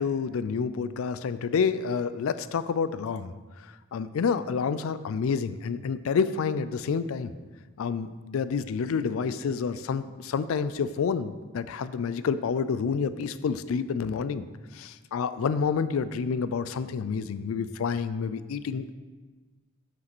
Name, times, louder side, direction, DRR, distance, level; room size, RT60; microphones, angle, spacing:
voice 1, 0.0-3.3 3.9-7.3 7.8-14.5 14.8-18.9, left 6 dB, 80° left, 14 dB, 0.4 m, -28 dB
5.8 x 5.0 x 6.0 m, 1.3 s
head